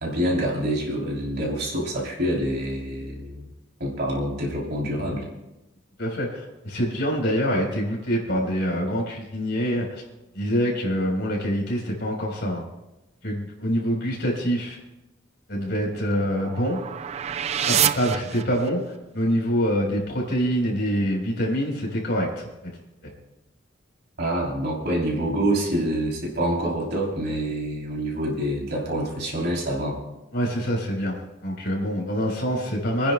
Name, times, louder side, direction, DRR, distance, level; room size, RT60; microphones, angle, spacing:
voice 1, 0.0-3.5 3.8-5.2 24.2-30.0, right 1 dB, 55° right, -2 dB, 3.2 m, -26 dB
voice 2, 6.0-10.0 10.3-12.6 13.2-14.8 15.5-16.8 17.7-22.8 30.3-31.2 31.4-33.1, equal, 60° left, -1 dB, 4.0 m, -25 dB
sound 1, 15.5-19.0, right 9 dB, 35° right, 0.3 m, -28 dB
30.0 x 10.0 x 2.2 m, 0.96 s
head